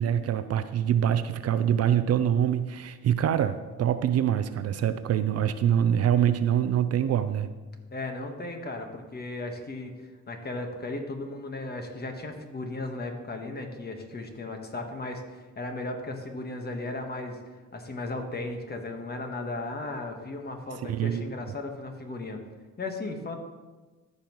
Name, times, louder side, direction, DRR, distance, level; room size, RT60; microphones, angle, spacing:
voice 1, 0.0-7.5 20.8-21.3, right 9 dB, 55° right, 11 dB, 0.5 m, -25 dB
voice 2, 7.9-17.4 17.7-22.4 22.8-23.4, left 2 dB, 30° left, 4 dB, 1.4 m, -36 dB
14.5 x 5.5 x 3.1 m, 1.3 s
cardioid pair, 90°, 30 cm